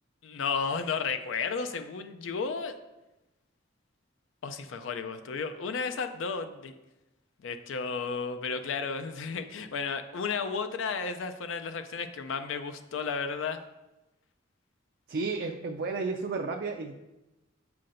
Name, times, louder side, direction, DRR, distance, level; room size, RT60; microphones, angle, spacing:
voice 1, 0.2-2.8 4.4-6.7 7.4-13.6, left 5 dB, 75° left, 9 dB, 0.4 m, -33 dB
voice 2, 15.1-17.0, right 4 dB, 55° right, 2 dB, 0.4 m, -32 dB
7.4 x 5.7 x 2.6 m, 1.0 s
head